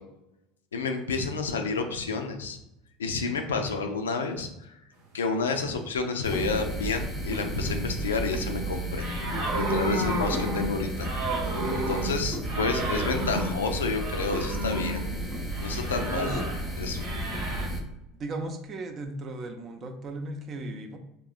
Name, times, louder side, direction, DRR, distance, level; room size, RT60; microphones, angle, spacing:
voice 1, 0.7-2.6 3.0-4.7 5.1-9.1 9.6-11.1 11.9-15.1 15.6-16.4 16.8-17.0, left 4 dB, 90° left, 5 dB, 0.3 m, -30 dB
sound 1, 6.2-17.8, right 1 dB, 10° left, 0.7 m, -33 dB
sound 2, 9.0-15.0 15.5-16.6 17.0-17.7, right 1 dB, 60° right, 1.0 m, -32 dB
voice 2, 12.6-13.3 16.1-16.3 18.2-21.0, right 2 dB, 40° right, 5 dB, 0.4 m, -36 dB
3.5 x 2.0 x 2.4 m, 0.84 s
hypercardioid pair, 80°, 0 cm